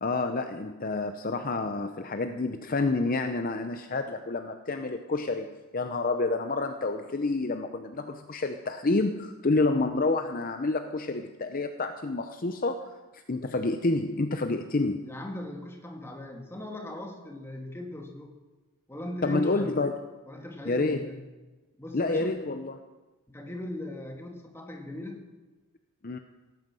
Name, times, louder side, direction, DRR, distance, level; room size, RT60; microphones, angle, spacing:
voice 1, 0.0-15.1 19.2-20.0 20.7-21.1 21.9-22.8 26.0-26.2, left 3 dB, 40° left, 7 dB, 0.7 m, -29 dB
voice 2, 15.0-18.4 18.9-19.8 20.3-21.2 21.8-22.4 23.3-25.2, left 1 dB, 10° left, 2 dB, 1.9 m, -39 dB
17.0 x 9.2 x 7.6 m, 1.2 s
head